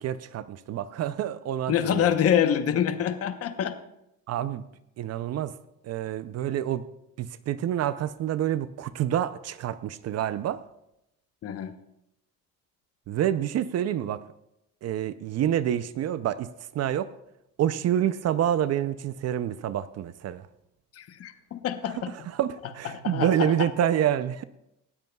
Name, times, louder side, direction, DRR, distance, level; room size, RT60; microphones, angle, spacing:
voice 1, 0.0-2.1 4.3-4.6 5.0-5.5 5.8-6.8 7.2-10.6 13.1-14.2 14.8-16.5 16.7-17.1 17.6-20.4 22.3-24.4, right 10 dB, 50° right, 14 dB, 0.5 m, -27 dB
voice 2, 1.7-3.7 11.4-11.7 20.9-22.1 22.8-23.7, left 9 dB, 45° left, 9 dB, 0.9 m, -26 dB
18.5 x 13.0 x 2.3 m, 0.84 s
cardioid pair, 125°, 33 cm